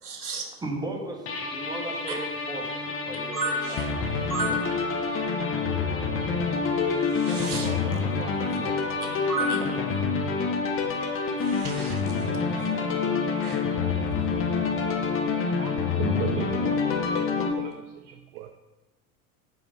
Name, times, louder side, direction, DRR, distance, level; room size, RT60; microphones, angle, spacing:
voice 1, 0.0-0.5 3.3-3.9 4.3-4.5 7.1-7.7 9.3-9.9 11.4-12.3 13.4-13.6, right 3 dB, 85° right, 2 dB, 0.9 m, -32 dB
voice 2, 0.6-4.8 6.2-6.7 7.3-9.8, right 2 dB, 10° right, 0 dB, 1.3 m, -38 dB
sound 1, 1.3-17.5, left 5 dB, 30° left, 0.8 m, -27 dB
voice 3, 15.6-16.8 17.5-17.7 18.1-18.5, right 10 dB, 50° right, 6 dB, 0.5 m, -35 dB
5.1 x 5.0 x 5.2 m, 1.1 s
figure-of-eight pair, 70°, 44 cm